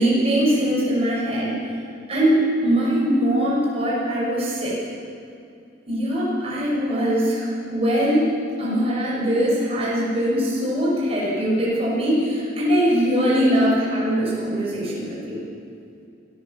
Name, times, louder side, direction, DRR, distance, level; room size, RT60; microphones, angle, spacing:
voice 1, 0.0-1.5 2.1-4.8 5.9-8.3 8.6-15.4, equal, 30° right, -6 dB, 6.2 m, -21 dB
25.5 x 14.5 x 7.1 m, 2.5 s
head